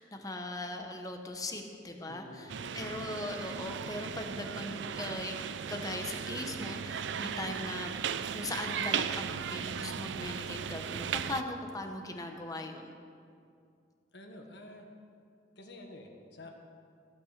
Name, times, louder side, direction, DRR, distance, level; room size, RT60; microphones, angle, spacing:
voice 1, 0.0-2.5 2.7-5.4 5.7-7.9 8.3-12.9, left 2 dB, 20° left, 4 dB, 1.0 m, -39 dB
voice 2, 2.1-2.9 14.1-14.9 15.5-16.5, left 1 dB, 65° left, 2 dB, 1.5 m, -49 dB
sound 1, 2.5-11.4, right 7 dB, 65° right, 0.4 m, -36 dB
15.0 x 8.8 x 6.5 m, 2.4 s
head